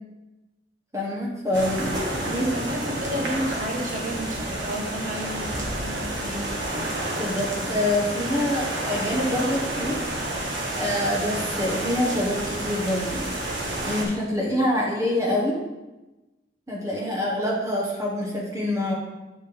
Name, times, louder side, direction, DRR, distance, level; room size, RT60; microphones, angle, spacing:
voice 1, 0.9-1.9 2.2-2.5 7.2-10.0 10.7-13.3 13.8-15.6 16.7-18.9, left 1 dB, 15° right, -4 dB, 1.1 m, -26 dB
sound 1, 1.5-14.0, right 1 dB, 85° right, 1.4 m, -30 dB
voice 2, 2.1-6.5, equal, 40° right, 1 dB, 1.2 m, -32 dB
8.7 x 5.1 x 3.5 m, 1.1 s
head